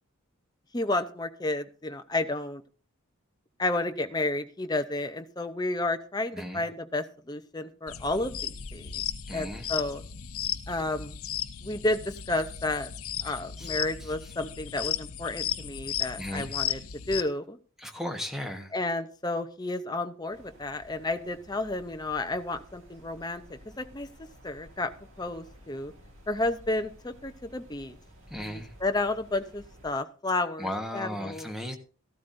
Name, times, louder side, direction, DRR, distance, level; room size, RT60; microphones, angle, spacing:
voice 1, 0.7-2.6 3.6-9.0 9.3-10.0 10.7-11.2 11.6-12.9 13.2-16.8 17.1-17.6 18.7-24.1 24.4-24.9 25.2-25.9 26.3-28.0 28.3-31.5, left 2 dB, 20° left, 8 dB, 0.7 m, -31 dB
voice 2, 6.3-6.6 9.3-9.7 13.6-13.7 14.0-14.3 16.1-16.6 17.8-18.7 28.3-28.7 30.6-31.8, equal, ahead, 4 dB, 1.3 m, -36 dB
sound 1, 7.9-17.2, left 10 dB, 85° left, 0.8 m, -35 dB
sound 2, 20.3-30.0, equal, 65° right, 2.4 m, -53 dB
14.5 x 12.5 x 2.6 m, 0.40 s
head